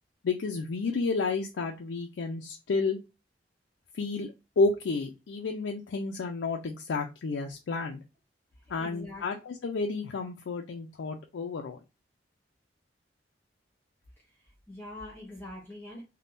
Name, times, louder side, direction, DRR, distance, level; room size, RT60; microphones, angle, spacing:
voice 1, 0.2-3.0 3.9-8.0 8.7-11.8, left 3 dB, 90° left, 2 dB, 0.4 m, -31 dB
voice 2, 8.6-9.2 14.2-16.0, left 1 dB, 10° left, -2 dB, 0.8 m, -44 dB
3.4 x 2.2 x 2.5 m, 0.27 s
head